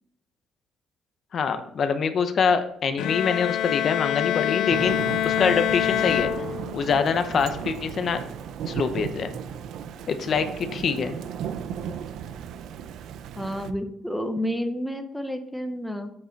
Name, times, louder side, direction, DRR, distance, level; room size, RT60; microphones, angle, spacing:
voice 1, 1.3-5.0 5.2-6.3 6.7-8.2 8.7-9.3 10.1-11.1, left 6 dB, 50° left, 9 dB, 0.9 m, -24 dB
Bowed string instrument, 3.0-7.0, left 12 dB, 80° left, 0.4 m, -26 dB
Thunder / Rain, 4.7-13.7, right 8 dB, 75° right, 0.6 m, -35 dB
voice 2, 13.4-16.1, equal, ahead, 6 dB, 0.8 m, -30 dB
7.7 x 6.6 x 4.6 m, 0.74 s
cardioid pair, 135°, 0 cm